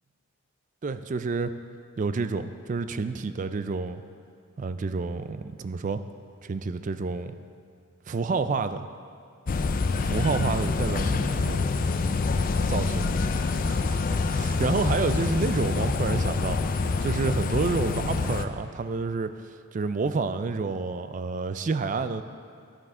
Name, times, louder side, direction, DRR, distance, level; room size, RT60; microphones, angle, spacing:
voice 1, 0.8-1.5 2.0-4.0 4.6-6.0 6.4-7.4 8.1-8.9 10.0-11.7 12.7-13.1 13.7-22.2, right 4 dB, 35° right, 11 dB, 0.3 m, -29 dB
sound 1, 9.5-18.5, left 4 dB, 40° left, 0.4 m, -26 dB
13.5 x 9.1 x 3.6 m, 2.3 s
head